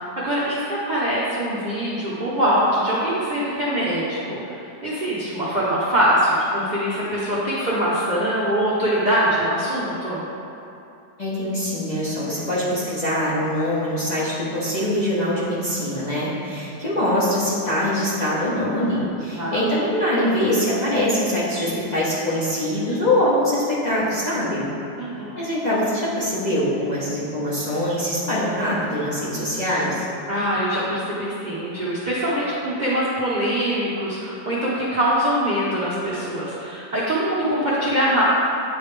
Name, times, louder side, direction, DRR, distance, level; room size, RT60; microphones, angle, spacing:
voice 1, 0.0-10.3 19.4-19.6 25.0-25.4 30.3-38.2, equal, 55° right, -8 dB, 0.5 m, -23 dB
voice 2, 11.2-24.7 25.4-30.0, left 1 dB, 30° left, -10 dB, 0.8 m, -23 dB
9.3 x 3.2 x 3.2 m, 2.7 s
omnidirectional pair, 2.0 m